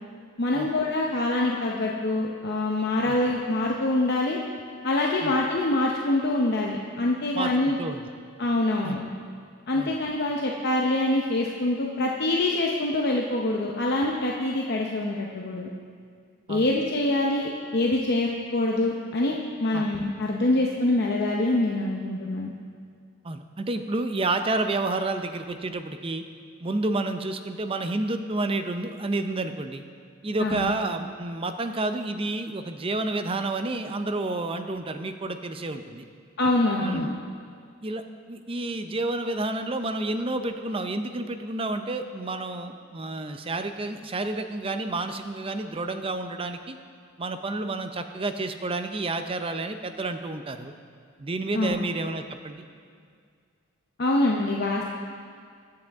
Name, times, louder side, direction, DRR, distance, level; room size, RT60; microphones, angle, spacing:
voice 1, 0.4-4.4 4.8-7.8 8.4-9.0 9.7-15.7 16.5-22.5 30.4-30.7 36.4-37.1 51.5-51.8 54.0-54.9, left 2 dB, 50° left, -2 dB, 0.8 m, -25 dB
voice 2, 7.3-8.1 8.8-9.0 9.8-9.9 16.5-16.7 19.7-19.8 23.2-26.2 26.6-29.8 30.2-36.0 36.8-37.1 37.8-38.0 38.3-46.8 47.2-50.7 51.2-52.6, right 2 dB, 25° right, 8 dB, 0.5 m, -30 dB
21.5 x 7.8 x 3.5 m, 2.2 s
head